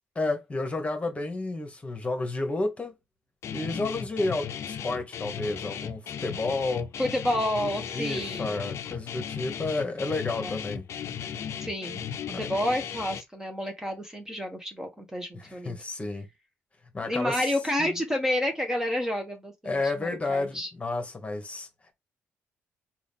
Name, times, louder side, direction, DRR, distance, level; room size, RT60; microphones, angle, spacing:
voice 1, 0.1-2.9 3.5-6.9 7.9-10.8 12.3-12.5 15.3-16.2 16.9-17.5 17.9-18.0 19.6-21.7, left 2 dB, 25° left, 1.3 m, -31 dB
Guitar, 3.4-13.2, left 8 dB, 60° left, 0.5 m, -36 dB
voice 2, 7.0-8.6 10.4-10.5 11.6-12.0 12.4-15.8 17.0-20.7, left 1 dB, 10° right, 1.1 m, -30 dB
3.7 x 2.5 x 3.5 m
supercardioid pair, 75°, 5 cm